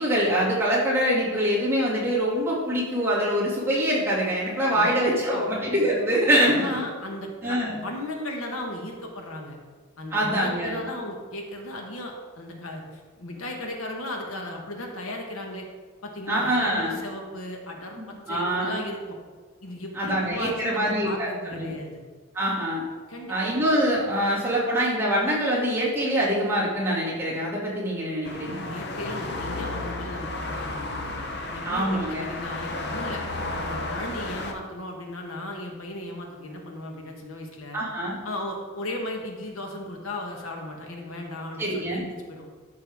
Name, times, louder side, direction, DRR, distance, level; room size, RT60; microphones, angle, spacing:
voice 1, 0.0-6.8 7.4-7.8 10.1-10.8 16.3-17.0 18.0-18.8 19.9-21.7 22.3-22.8 23.3-28.6 31.6-32.3 37.7-38.2 41.6-42.0, equal, 10° right, -8 dB, 2.3 m, -24 dB
voice 2, 4.7-5.5 6.5-9.6 10.0-15.7 16.0-19.2 19.6-22.0 23.1-23.5 28.6-31.1 31.5-33.2 33.5-37.8 38.2-42.5, left 1 dB, 85° left, 2 dB, 1.3 m, -36 dB
sound 1, 28.2-34.5, left 2 dB, 50° left, 0.8 m, -33 dB
12.5 x 5.6 x 3.5 m, 1.5 s
head